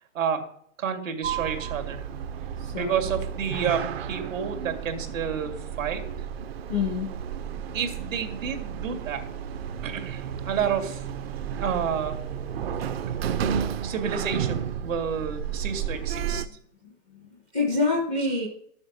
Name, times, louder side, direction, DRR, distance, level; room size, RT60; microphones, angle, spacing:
voice 1, 0.1-0.5 0.8-2.0 2.7-6.0 7.7-9.2 9.8-11.0 11.6-12.2 13.8-16.4, right 7 dB, 70° right, 5 dB, 2.6 m, -30 dB
Sliding door, 1.2-16.5, right 8 dB, 45° right, 0.7 m, -32 dB
voice 2, 2.6-2.9 6.7-7.1 17.1-18.5, left 3 dB, 5° right, 0 dB, 0.4 m, -26 dB
12.5 x 7.1 x 6.4 m, 0.66 s
hypercardioid pair, 165°, 41 cm